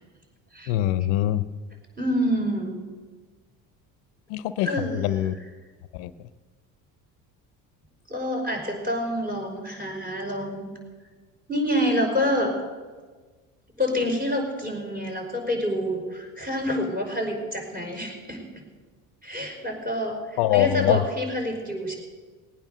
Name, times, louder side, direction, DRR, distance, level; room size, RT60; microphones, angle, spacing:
voice 1, 0.7-1.5 4.3-5.4 5.9-6.1 20.4-21.0, left 13 dB, 75° left, 14 dB, 0.7 m, -23 dB
voice 2, 2.0-2.8 4.6-5.3 8.1-10.7 11.5-12.5 13.8-18.4 19.2-22.0, equal, 20° right, 1 dB, 5.3 m, -27 dB
19.0 x 9.2 x 6.8 m, 1.4 s
supercardioid pair, 75°, 41 cm